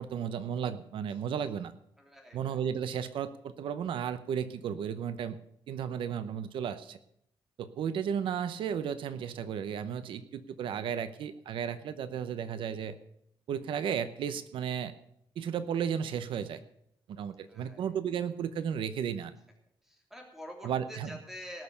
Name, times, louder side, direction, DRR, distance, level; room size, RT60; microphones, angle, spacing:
voice 1, 0.0-1.7 2.3-5.4 5.7-7.0 7.6-13.0 13.5-14.9 15.4-16.6 17.1-19.3 20.6-21.1, right 8 dB, 85° right, 12 dB, 0.9 m, -34 dB
voice 2, 2.0-2.6 17.5-17.9 19.8-21.6, equal, 5° right, 1 dB, 3.2 m, -47 dB
19.0 x 6.7 x 7.0 m, 0.73 s
wide cardioid pair, 165°, 9 cm